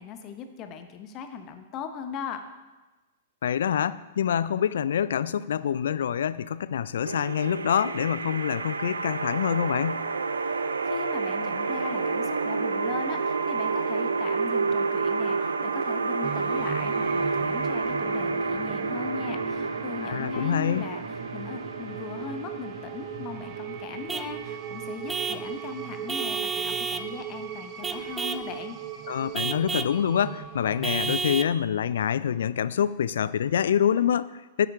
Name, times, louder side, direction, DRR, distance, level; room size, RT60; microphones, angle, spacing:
voice 1, 0.0-2.4 10.4-28.8, left 6 dB, 35° left, 8 dB, 0.9 m, -39 dB
voice 2, 3.4-10.0 20.0-20.8 29.1-34.7, left 9 dB, 65° left, 18 dB, 0.3 m, -26 dB
sound 1, 7.0-26.0, right 4 dB, 80° right, 0.4 m, -30 dB
sound 2, 16.2-31.2, right 9 dB, 35° right, 0.9 m, -39 dB
Vehicle horn car horn honking / Truck, 24.1-24.4 25.1-25.5 26.1-27.1 27.8-28.5 29.3-30.0 30.8-31.6, right 5 dB, 15° right, 0.4 m, -31 dB
9.4 x 8.6 x 3.6 m, 1.2 s
figure-of-eight pair, 105°, 0 cm